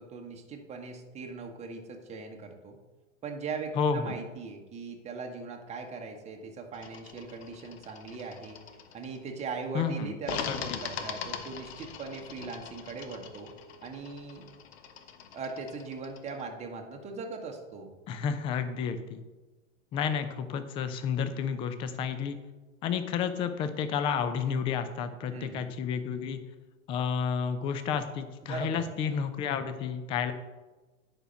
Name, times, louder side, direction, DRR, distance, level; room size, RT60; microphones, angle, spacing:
voice 1, 0.0-2.8 3.2-8.6 8.9-13.5 13.8-14.4 15.3-17.9 25.3-25.7 28.5-28.9, right 4 dB, 15° right, 2 dB, 1.2 m, -40 dB
voice 2, 3.8-4.1 9.7-10.1 10.5-10.8 18.1-19.2 19.9-22.4 22.8-26.4 26.9-30.3, left 6 dB, 15° left, 10 dB, 0.4 m, -31 dB
sound 1, 6.7-9.4 10.2-16.4, left 7 dB, 50° left, 1.0 m, -41 dB
9.8 x 4.6 x 6.2 m, 1.2 s
figure-of-eight pair, 100°, 39 cm